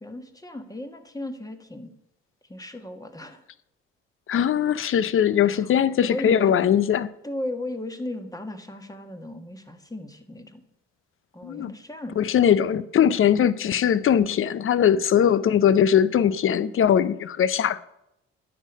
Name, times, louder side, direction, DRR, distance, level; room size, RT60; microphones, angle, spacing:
voice 1, 0.0-1.9 2.5-3.4 5.4-5.7 6.1-6.6 7.2-10.6 11.3-12.2, left 1 dB, 10° left, 1.4 m, -36 dB
voice 2, 4.3-7.1 11.4-11.7 12.2-17.8, left 9 dB, 45° left, 0.6 m, -20 dB
10.0 x 6.6 x 5.3 m
hypercardioid pair, 55°, 30 cm